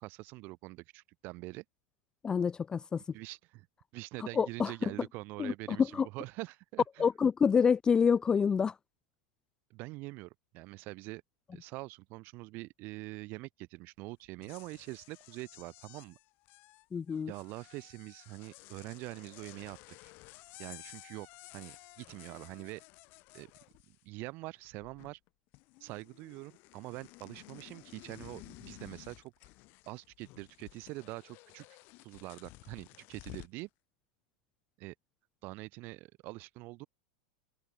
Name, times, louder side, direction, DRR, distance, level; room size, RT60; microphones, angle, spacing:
voice 1, 0.0-1.6 3.1-3.7 3.9-7.1 9.7-11.2 11.5-16.2 17.3-19.8 20.0-20.1 20.6-21.3 21.5-22.8 23.3-23.5 23.9-25.2 25.8-29.3 29.9-31.7 32.0-33.7 34.8-34.9 35.4-36.9, right 22 dB, 50° right, 3.7 m, -44 dB
voice 2, 2.2-3.0 4.3-4.7 5.4-6.1 7.0-8.7 16.9-17.3, left 6 dB, 15° left, 0.3 m, -27 dB
sound 1, 14.2-24.3 24.6-25.3 25.5-33.6, left 24 dB, 50° left, 5.9 m, -54 dB
supercardioid pair, 130°, 4 cm